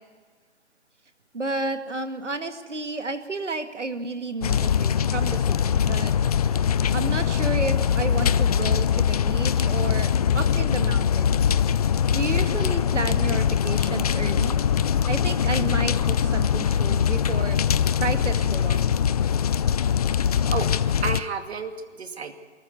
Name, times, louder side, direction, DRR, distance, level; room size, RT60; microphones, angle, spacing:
voice 1, 1.3-6.1 6.9-11.4 12.1-14.6 15.1-17.6 18.0-18.8, right 3 dB, 80° right, 8 dB, 2.1 m, -31 dB
sound 1, 4.4-21.2, left 8 dB, 35° left, 0.5 m, -22 dB
voice 2, 21.0-22.3, right 5 dB, 60° right, 7 dB, 2.3 m, -31 dB
23.5 x 14.0 x 9.4 m, 1.5 s
figure-of-eight pair, 135°, 35 cm